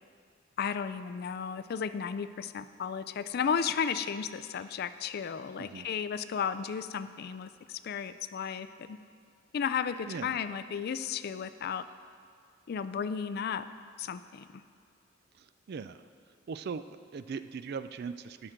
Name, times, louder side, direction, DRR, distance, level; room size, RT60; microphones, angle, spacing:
voice 1, 0.6-9.0 9.5-11.9 12.7-13.6 14.0-14.6, left 7 dB, 50° left, 12 dB, 0.3 m, -34 dB
voice 2, 10.1-10.4 15.4-16.0 16.5-18.5, right 5 dB, 50° right, 12 dB, 0.3 m, -40 dB
12.0 x 6.0 x 5.0 m, 2.3 s
head